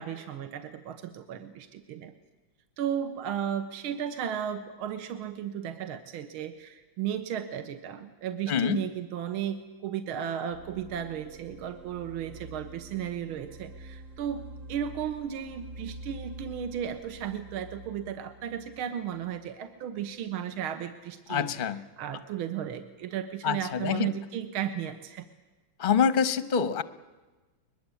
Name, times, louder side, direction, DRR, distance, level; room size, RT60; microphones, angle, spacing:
voice 1, 0.0-2.1 2.8-21.7 22.0-25.3, right 9 dB, 75° right, 8 dB, 2.1 m, -35 dB
voice 2, 8.5-8.8 21.3-21.8 23.4-24.1 25.8-26.8, left 7 dB, 45° left, 13 dB, 0.7 m, -26 dB
sound 1, 10.5-20.3, right 1 dB, 50° right, 1.0 m, -47 dB
22.0 x 22.0 x 8.5 m, 1.2 s
omnidirectional pair, 2.3 m